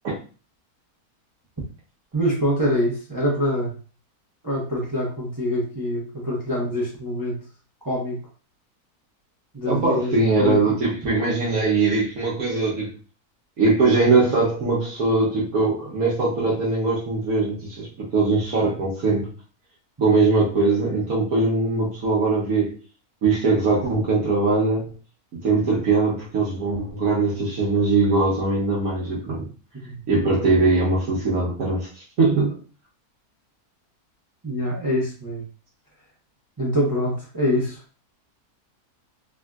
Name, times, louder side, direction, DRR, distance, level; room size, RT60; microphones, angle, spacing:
voice 1, 2.1-3.8 4.4-7.4 7.8-8.2 9.5-10.8 29.8-30.0 34.4-35.4 36.6-37.8, equal, 20° right, -4 dB, 0.5 m, -25 dB
voice 2, 9.7-12.9 13.6-19.3 20.0-22.7 23.2-24.9 25.3-29.5 30.1-32.6, right 3 dB, 70° right, -6 dB, 1.3 m, -21 dB
3.4 x 2.4 x 2.3 m, 0.37 s
omnidirectional pair, 1.6 m